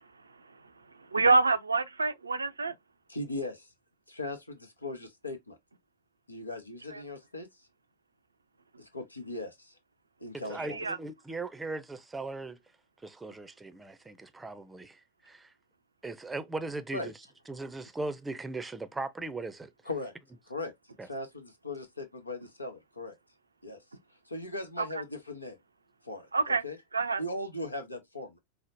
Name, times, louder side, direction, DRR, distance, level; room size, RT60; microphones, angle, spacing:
voice 1, 1.1-2.7 10.8-11.0 26.3-26.6 26.9-27.2, right 3 dB, 80° right, 0.4 m, -26 dB
voice 2, 3.1-3.7 4.1-5.6 6.3-7.5 8.8-9.7 10.2-10.9 16.9-17.1 19.8-20.1 20.5-20.7 21.0-23.1 23.6-23.8 24.3-25.6 26.0-26.3 26.6-26.8 27.2-28.4, left 2 dB, 85° left, 0.8 m, -38 dB
voice 3, 10.5-12.6 13.0-15.5 16.0-17.1 17.5-19.7 21.0-21.1, right 2 dB, 10° right, 0.6 m, -38 dB
5.0 x 2.0 x 2.6 m
figure-of-eight pair, 90°, 0 cm